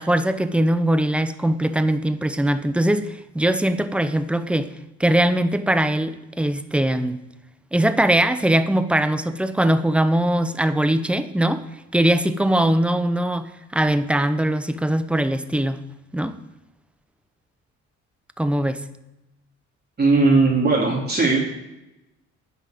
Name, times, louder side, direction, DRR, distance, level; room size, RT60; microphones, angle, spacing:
voice 1, 0.0-4.7 5.0-7.2 7.7-11.6 11.9-15.8 16.1-16.3 18.4-18.8, right 1 dB, 5° right, 11 dB, 0.7 m, -21 dB
voice 2, 20.0-21.4, right 3 dB, 35° right, -4 dB, 2.7 m, -18 dB
10.5 x 5.7 x 7.7 m, 0.92 s
cardioid pair, 90°, 30 cm